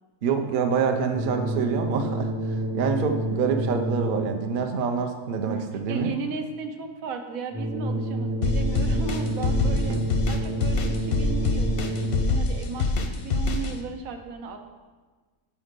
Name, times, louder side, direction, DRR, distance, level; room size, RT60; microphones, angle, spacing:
voice 1, 0.2-6.1 9.9-10.0, right 5 dB, 55° right, 5 dB, 0.6 m, -26 dB
sound 1, 1.1-4.6 7.5-12.6, right 1 dB, 5° right, 0.6 m, -29 dB
voice 2, 5.5-10.0 10.3-14.6, right 5 dB, 90° right, 6 dB, 1.1 m, -35 dB
sound 2, 8.4-13.7, left 3 dB, 60° left, 0.6 m, -24 dB
5.8 x 4.1 x 5.1 m, 1.4 s
omnidirectional pair, 1.4 m